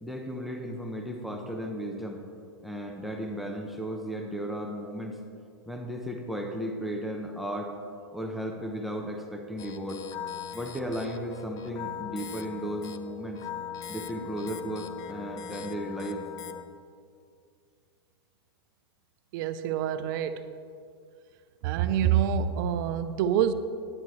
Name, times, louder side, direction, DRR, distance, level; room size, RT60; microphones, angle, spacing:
voice 1, 0.0-2.2 2.6-5.2 5.7-7.7 8.1-10.0 10.5-13.4 13.9-16.3, equal, ahead, 2 dB, 0.8 m, -35 dB
sound 1, 9.6-16.6, left 8 dB, 25° left, 0.6 m, -40 dB
voice 2, 19.3-20.5 21.6-23.5, right 9 dB, 50° right, 11 dB, 0.7 m, -26 dB
15.5 x 10.0 x 3.2 m, 2.3 s
hypercardioid pair, 130°, 14 cm